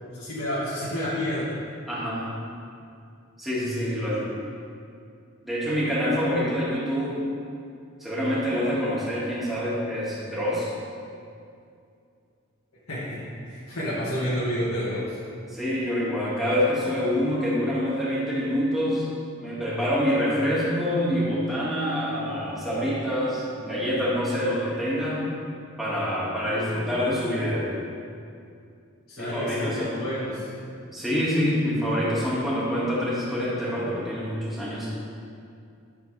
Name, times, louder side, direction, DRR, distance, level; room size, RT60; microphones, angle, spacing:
voice 1, 0.1-1.5 3.7-4.1 12.9-15.2 29.1-30.5, equal, 85° left, -9 dB, 1.7 m, -30 dB
voice 2, 1.9-2.3 3.4-4.3 5.4-7.2 8.0-10.7 15.5-19.1 19.4-25.2 25.8-27.7 29.2-29.9 30.9-34.9, equal, ahead, -9 dB, 1.9 m, -26 dB
11.5 x 6.7 x 3.3 m, 2.4 s
head